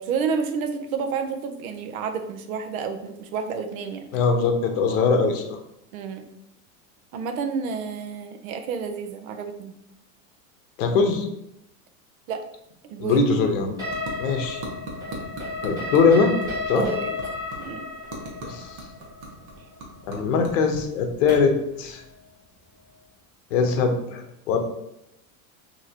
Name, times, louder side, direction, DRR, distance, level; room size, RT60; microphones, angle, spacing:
voice 1, 0.0-4.1 5.9-6.3 7.1-9.7 12.3-12.4 12.8-13.2 16.7-17.1 17.6-17.9, right 5 dB, 85° right, 6 dB, 0.8 m, -30 dB
voice 2, 4.1-5.6 10.8-11.3 13.0-13.7 14.2-14.6 15.6-16.3 16.7-16.8 18.4-18.8 20.0-22.0 23.5-24.6, left 4 dB, 65° left, 5 dB, 1.0 m, -21 dB
teeth clicking, 12.9-22.4, right 2 dB, 40° right, 1.1 m, -42 dB
sound 1, 13.8-21.6, left 3 dB, 10° right, 0.5 m, -33 dB
6.1 x 2.9 x 2.9 m, 0.80 s
supercardioid pair, 180°, 41 cm